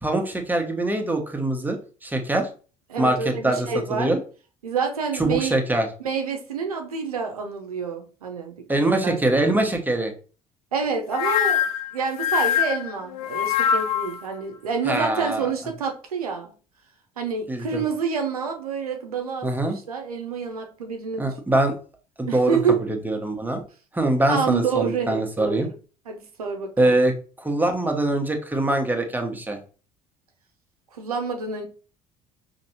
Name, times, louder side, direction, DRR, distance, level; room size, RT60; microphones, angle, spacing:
voice 1, 0.0-1.8 2.0-2.5 3.0-4.2 5.2-5.9 8.7-10.1 14.8-15.5 17.5-17.8 19.4-19.8 21.2-21.7 22.2-22.6 23.0-23.6 23.9-25.7 26.8-27.1 27.4-29.6, right 2 dB, 10° right, 0.9 m, -23 dB
voice 2, 2.9-4.1 4.6-5.6 6.0-8.6 9.0-9.2 10.7-11.6 11.9-16.5 17.2-19.5 19.9-21.3 22.3-22.8 24.3-25.6 26.1-26.9 30.9-31.7, right 5 dB, 85° right, 0.6 m, -28 dB
sound 1, 11.1-14.2, left 9 dB, 70° left, 0.4 m, -23 dB
5.1 x 2.8 x 2.7 m
figure-of-eight pair, 60°, 19 cm